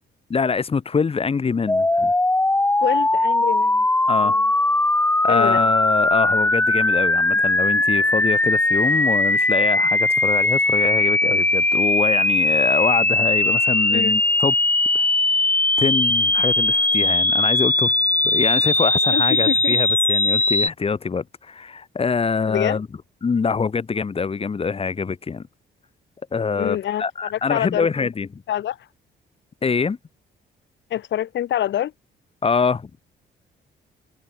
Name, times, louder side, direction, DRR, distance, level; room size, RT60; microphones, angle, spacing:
voice 1, 0.3-2.1 4.1-4.4 5.2-14.5 14.9-15.1 15.8-17.9 18.2-22.9 23.2-25.5 26.3-28.3 29.6-30.0 32.4-33.0, left 5 dB, 30° left, 1.0 m, -24 dB
sound 1, 1.7-20.7, left 2 dB, 10° left, 0.6 m, -19 dB
voice 2, 2.8-3.9 4.2-4.4 5.3-5.6 13.9-14.2 19.1-19.8 22.5-22.8 26.6-28.1 28.5-28.9 30.9-31.9, left 11 dB, 65° left, 1.1 m, -26 dB
cardioid pair, 90°, 20 cm